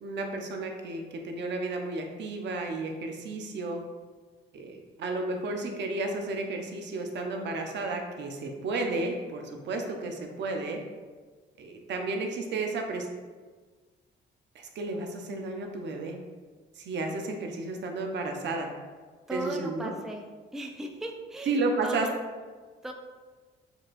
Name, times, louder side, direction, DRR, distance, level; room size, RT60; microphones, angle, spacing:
voice 1, 0.0-3.8 4.5-10.8 11.6-13.1 14.5-16.2 16.8-18.7 19.3-19.9 21.5-22.1, right 3 dB, 65° right, 3 dB, 0.6 m, -32 dB
voice 2, 19.3-20.3 20.5-22.2 22.8-22.9, right 1 dB, ahead, 2 dB, 0.4 m, -37 dB
6.3 x 2.4 x 2.5 m, 1.4 s
cardioid pair, 90°, 20 cm